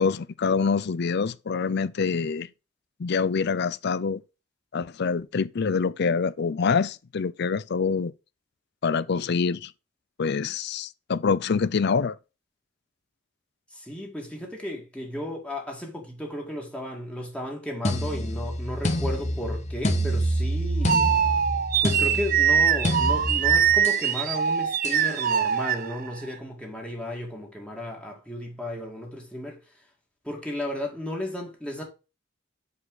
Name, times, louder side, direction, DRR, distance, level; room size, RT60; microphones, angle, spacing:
voice 1, 0.0-2.5 3.0-4.2 4.7-8.1 8.8-9.7 10.2-12.2, left 5 dB, 60° left, 0.5 m, -25 dB
voice 2, 13.7-21.1 21.8-29.8 30.2-31.8, left 1 dB, 5° left, 2.4 m, -34 dB
sound 1, 17.8-24.1 24.8-25.1, left 1 dB, 35° left, 1.4 m, -29 dB
sound 2, 19.9-26.3, right 8 dB, 45° right, 0.5 m, -23 dB
8.1 x 5.0 x 3.9 m
head